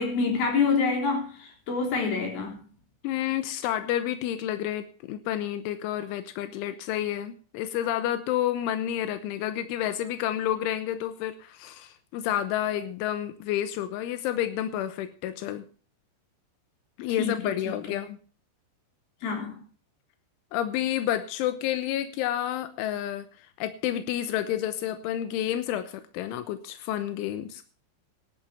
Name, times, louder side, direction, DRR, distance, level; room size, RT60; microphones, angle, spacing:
voice 1, 0.0-2.6 17.2-17.8 19.2-19.6, left 4 dB, 55° left, 5.1 m, -27 dB
voice 2, 3.0-15.6 17.0-18.2 20.5-23.3 23.6-27.6, left 11 dB, 85° left, 3.3 m, -30 dB
21.0 x 11.5 x 2.8 m
omnidirectional pair, 5.5 m